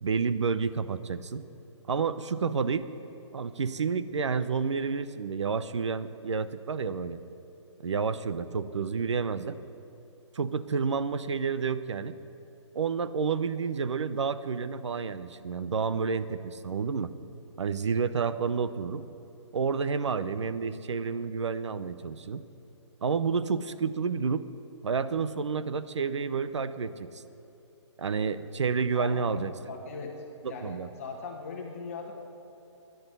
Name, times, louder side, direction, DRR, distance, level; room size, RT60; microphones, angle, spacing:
voice 1, 0.0-1.4 1.9-2.9 3.3-7.2 7.8-9.6 10.3-12.2 12.7-17.1 17.6-19.0 19.5-22.4 23.0-24.4 24.8-27.2 28.0-29.5 30.4-30.9, right 5 dB, 70° right, 13 dB, 0.8 m, -30 dB
voice 2, 28.9-29.3 29.7-30.1 30.4-32.2, left 4 dB, 25° left, 0 dB, 1.6 m, -39 dB
14.0 x 10.5 x 9.4 m, 2.9 s
hypercardioid pair, 170°, 16 cm